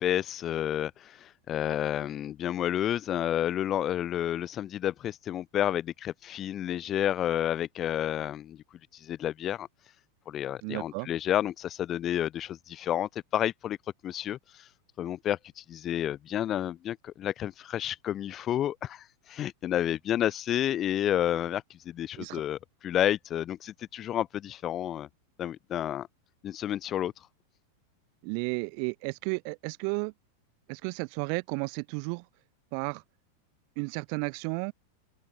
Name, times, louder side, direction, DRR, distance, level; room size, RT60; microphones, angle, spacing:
voice 1, 0.0-8.6 8.9-9.7 10.3-13.8 14.0-14.7 15.0-25.1 25.4-26.1 26.4-27.1, left 11 dB, 30° left, 8.0 m, -30 dB
voice 2, 10.6-11.1 22.2-22.4 28.2-30.1 30.7-32.2 32.7-33.0 33.8-34.7, right 40 dB or more, 45° right, 3.1 m, -33 dB
figure-of-eight pair, 90°, 0 cm